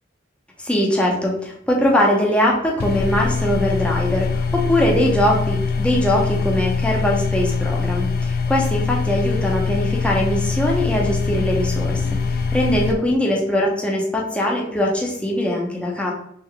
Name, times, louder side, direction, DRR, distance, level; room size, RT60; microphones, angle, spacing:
voice 1, 0.6-16.1, left 1 dB, 5° left, -2 dB, 0.8 m, -21 dB
sound 1, 2.8-12.9, left 4 dB, 55° left, 0.4 m, -23 dB
3.8 x 3.4 x 3.4 m, 0.71 s
head